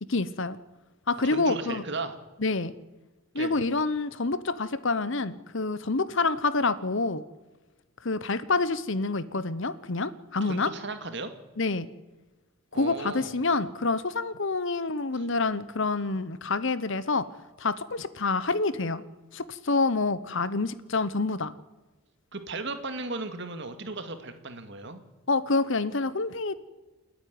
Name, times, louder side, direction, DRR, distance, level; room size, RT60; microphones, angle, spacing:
voice 1, 0.1-0.6 1.1-1.8 2.4-2.7 3.3-7.2 8.0-10.7 11.6-11.9 12.7-17.3 17.6-19.0 19.3-21.5 25.3-26.6, left 3 dB, 60° left, 15 dB, 1.0 m, -27 dB
voice 2, 1.2-2.1 3.4-3.6 10.4-11.3 12.7-13.3 15.1-15.2 22.3-25.0, right 3 dB, 55° right, 9 dB, 2.1 m, -36 dB
28.5 x 9.9 x 9.5 m, 1.1 s
head